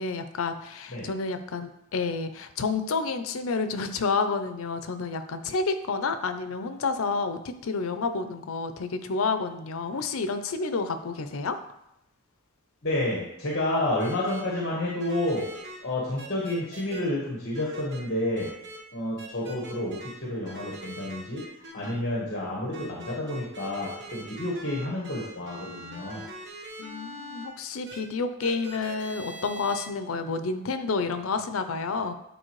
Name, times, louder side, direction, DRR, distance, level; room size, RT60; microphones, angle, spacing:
voice 1, 0.0-11.6 26.8-32.1, left 4 dB, 80° left, 10 dB, 0.6 m, -29 dB
voice 2, 12.8-15.4 15.8-18.5 18.9-21.4 21.7-26.2, left 1 dB, 55° left, -4 dB, 1.3 m, -30 dB
sound 1, 14.0-14.4 15.0-15.8 16.2-17.0 17.5-18.0 18.3-18.8 19.2-20.1 20.4-21.9 22.7-27.4 27.8-28.0 28.4-29.9, right 1 dB, 55° right, 1.2 m, -42 dB
9.1 x 4.3 x 3.1 m, 0.82 s
head